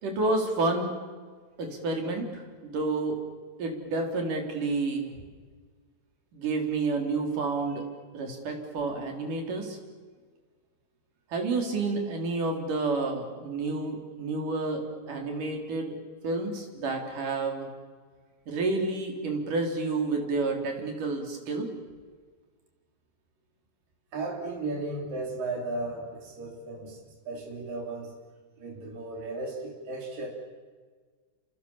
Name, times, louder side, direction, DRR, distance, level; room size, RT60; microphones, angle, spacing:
voice 1, 0.0-0.9 1.6-3.2 3.6-5.1 6.3-7.8 8.1-9.8 11.3-16.0 16.2-17.7 18.5-21.7, right 3 dB, 70° right, 3 dB, 5.5 m, -30 dB
voice 2, 24.1-27.0 27.3-28.1 28.6-30.3, right 2 dB, 85° right, 2 dB, 5.2 m, -35 dB
28.5 x 26.0 x 7.3 m, 1.5 s
omnidirectional pair, 3.8 m